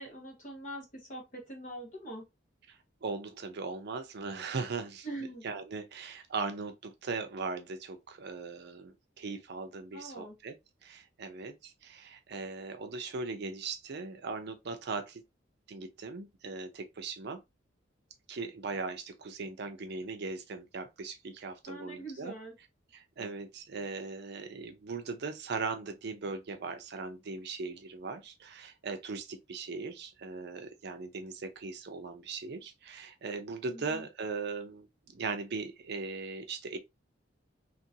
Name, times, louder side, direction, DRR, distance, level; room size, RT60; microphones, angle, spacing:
voice 1, 0.0-2.2 5.0-5.4 9.9-10.3 21.7-22.5 33.7-34.0, right 1 dB, 40° left, 1.3 m, -43 dB
voice 2, 2.7-5.1 5.4-10.6 10.8-15.2 15.7-17.4 18.3-22.3 22.9-34.9 35.1-36.8, right 4 dB, 60° right, 0.5 m, -39 dB
2.9 x 2.5 x 2.6 m
head